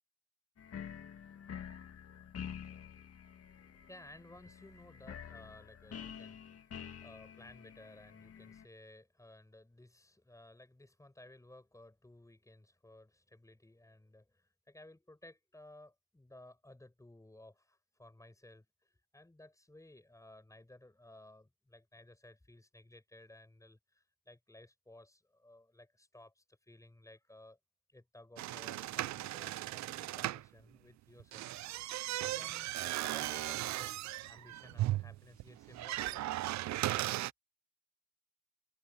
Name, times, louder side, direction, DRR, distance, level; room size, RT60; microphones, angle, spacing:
sound 1, 0.6-8.7, left 8 dB, 50° left, 2.2 m, -48 dB
voice 1, 3.5-27.6 27.9-31.6 32.2-32.7 33.1-36.3 36.9-37.3, left 1 dB, 10° left, 5.9 m, -57 dB
sound 2, 28.4-30.5 31.2-37.3, right 16 dB, 70° right, 0.5 m, -37 dB
cardioid pair, 90°, 30 cm